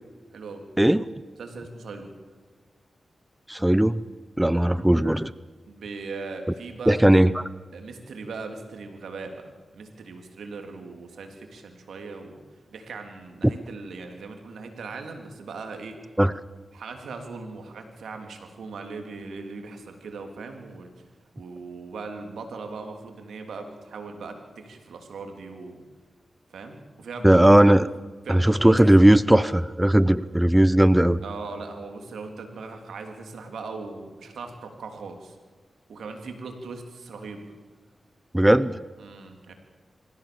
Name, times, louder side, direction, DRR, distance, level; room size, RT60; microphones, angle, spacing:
voice 1, 1.4-2.1 4.5-4.9 5.7-7.1 7.7-9.5 9.7-12.4 12.7-16.0 16.7-20.9 21.4-25.8 26.5-27.5 28.2-28.8 31.2-35.4 35.9-37.4 39.0-39.5, right 4 dB, 85° right, 4 dB, 3.4 m, -39 dB
voice 2, 3.5-4.0 4.4-5.3 6.9-7.5 13.4-13.5 16.2-16.3 27.2-27.9 28.3-31.2 38.3-38.8, right 1 dB, 10° right, 16 dB, 0.8 m, -18 dB
26.0 x 15.5 x 7.1 m, 1.4 s
cardioid pair, 40°, 0 cm